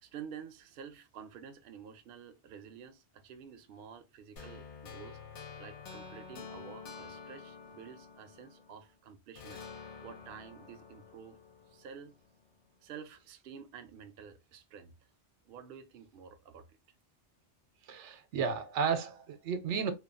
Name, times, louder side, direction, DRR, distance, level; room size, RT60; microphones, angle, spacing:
voice 1, 0.0-5.2 5.6-11.4 11.7-12.2 12.8-14.9 15.4-16.8, right 7 dB, 65° right, 0.7 m, -50 dB
sound 1, 4.4-8.9 9.4-12.4, left 5 dB, 85° left, 1.0 m, -49 dB
voice 2, 17.9-19.9, right 6 dB, 90° right, 0.9 m, -33 dB
2.9 x 2.2 x 2.4 m
omnidirectional pair, 1.2 m